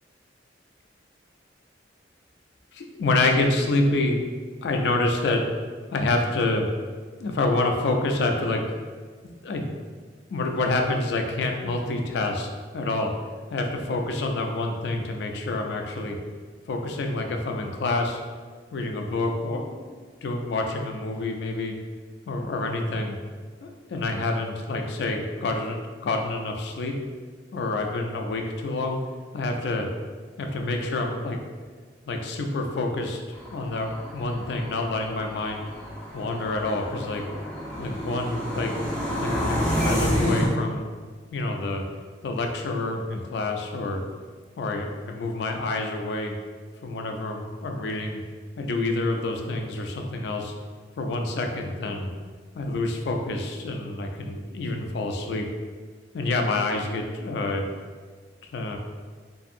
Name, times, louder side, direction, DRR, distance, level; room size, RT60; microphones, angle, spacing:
voice 1, 2.7-4.3 4.6-5.4 5.9-6.7 7.2-8.7 9.4-9.7 10.3-12.5 12.7-13.1 13.5-16.2 16.7-18.2 18.7-21.7 22.3-23.2 23.6-26.9 27.5-29.0 29.3-29.9 30.4-31.4 32.1-33.2 33.5-35.6 36.1-37.2 37.8-38.7 39.2-40.9 41.3-41.8 42.2-44.0 44.6-46.3 46.8-48.2 48.6-50.5 51.0-52.1 52.5-55.5 56.1-57.6 58.5-58.8, left 2 dB, 65° left, 3 dB, 0.3 m, -27 dB
sound 1, 33.3-40.5, equal, 5° left, 0.5 m, -30 dB
2.6 x 2.6 x 2.5 m, 1.5 s
head